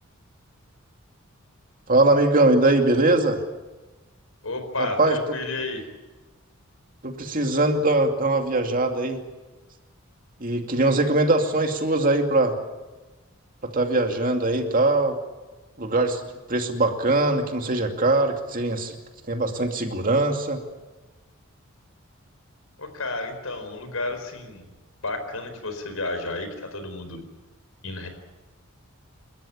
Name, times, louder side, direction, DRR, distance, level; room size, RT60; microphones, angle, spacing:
voice 1, 1.9-3.4 4.8-5.2 7.0-9.2 10.4-12.6 13.6-15.2 15.8-16.2 16.5-18.9 19.3-20.6, right 2 dB, 40° right, 4 dB, 2.5 m, -21 dB
voice 2, 4.4-5.9 22.8-24.6 25.0-27.2 27.8-28.1, left 2 dB, 85° left, 8 dB, 4.6 m, -31 dB
29.0 x 14.0 x 8.5 m, 1.1 s
head